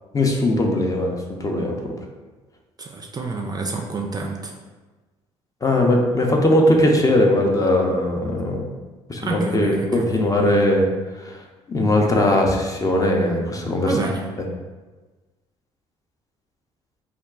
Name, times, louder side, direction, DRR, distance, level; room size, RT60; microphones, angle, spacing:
voice 1, 0.1-1.9 5.6-8.6 9.1-10.9 11.7-13.9, left 1 dB, 25° left, 1 dB, 0.5 m, -19 dB
voice 2, 2.8-4.5 8.2-8.3 9.2-10.2 13.9-14.2, right 3 dB, 30° right, 1 dB, 0.4 m, -28 dB
2.3 x 2.2 x 3.5 m, 1.3 s
hypercardioid pair, 60°, 14 cm